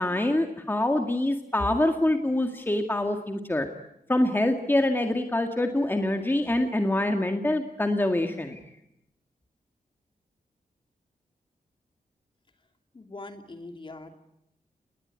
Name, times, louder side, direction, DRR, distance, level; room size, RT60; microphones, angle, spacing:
voice 1, 0.0-3.7 4.1-8.6, left 1 dB, 15° left, 5 dB, 2.0 m, -25 dB
voice 2, 12.9-14.2, left 2 dB, 35° left, 6 dB, 2.8 m, -42 dB
29.0 x 20.5 x 9.6 m, 0.82 s
wide cardioid pair, 110°, 15 cm